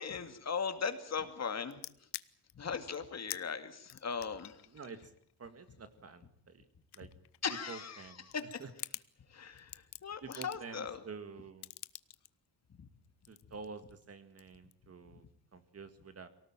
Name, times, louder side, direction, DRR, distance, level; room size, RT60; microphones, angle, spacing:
voice 1, 0.0-2.1 2.5-4.6 7.4-8.6 9.3-11.0 12.8-12.9, left 6 dB, 40° left, 8 dB, 2.3 m, -39 dB
sound 1, 1.7-2.5 2.9-3.0 3.3-3.5 3.9-6.2 6.7-7.9 8.3-9.1 9.6-10.8 11.6-12.3 13.0-14.0 14.4-14.7, left 14 dB, 70° left, 0.9 m, -47 dB
voice 2, 4.7-5.1 5.4-6.6 6.9-7.1 7.7-8.2 8.6-8.7 10.2-11.7 13.3-15.2 15.5-16.3, right 5 dB, 35° right, 10 dB, 1.9 m, -48 dB
24.0 x 18.0 x 9.0 m, 0.65 s
cardioid pair, 145°, 41 cm